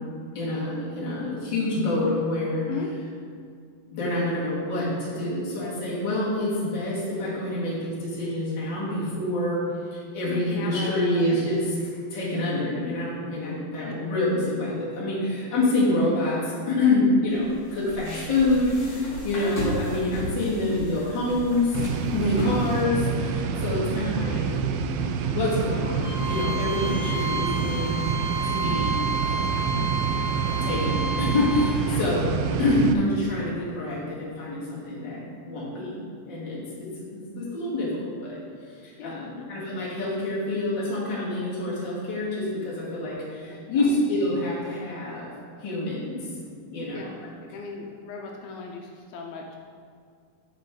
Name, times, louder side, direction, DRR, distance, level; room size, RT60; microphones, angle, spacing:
voice 1, 0.3-2.6 3.9-9.6 9.9-11.6 12.1-21.8 22.1-24.4 25.2-28.0 28.4-29.0 30.6-32.2 32.5-35.9 36.3-36.6 37.0-38.4 38.7-45.3 45.6-46.3 46.7-47.0, left 2 dB, 35° left, -8 dB, 2.5 m, -26 dB
voice 2, 10.3-11.5 12.0-12.2 13.9-14.0 17.4-17.6 19.3-19.5 22.3-22.6 26.8-27.1 29.3-30.1 30.5-30.7 31.8-32.1 39.0-39.5 43.5-44.0 46.9-47.1 47.5-49.6, left 5 dB, 80° left, 0 dB, 2.5 m, -38 dB
sound 1, 17.3-22.8, left 1 dB, 65° left, 4.1 m, -34 dB
sound 2, 21.7-32.9, right 6 dB, 80° right, 2.3 m, -27 dB
Bowed string instrument, 26.0-31.8, right 3 dB, 50° right, 1.6 m, -30 dB
12.0 x 5.1 x 3.8 m, 2.2 s
omnidirectional pair, 4.3 m